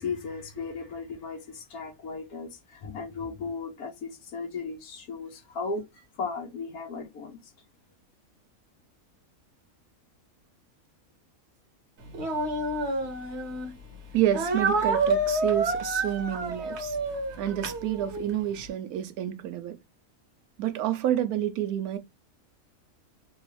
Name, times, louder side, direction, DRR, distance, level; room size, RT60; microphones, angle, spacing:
voice 1, 0.0-7.4, left 4 dB, 90° left, 1.3 m, -36 dB
Speech, 12.1-13.7 14.3-18.4, right 2 dB, 55° right, 0.9 m, -28 dB
voice 2, 14.1-17.0 17.4-19.8 20.6-22.0, right 11 dB, 85° right, 1.1 m, -29 dB
3.4 x 2.3 x 3.1 m
omnidirectional pair, 1.5 m